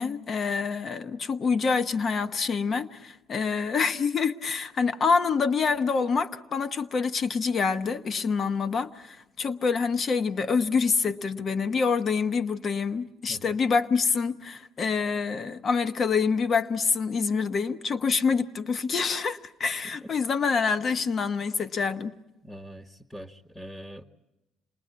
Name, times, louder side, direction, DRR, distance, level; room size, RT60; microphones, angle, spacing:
voice 1, 0.0-22.1, left 5 dB, 45° left, 10 dB, 1.1 m, -26 dB
voice 2, 22.4-24.0, equal, 10° left, 5 dB, 1.4 m, -43 dB
28.0 x 20.0 x 8.6 m, 0.97 s
supercardioid pair, 85°, 0 cm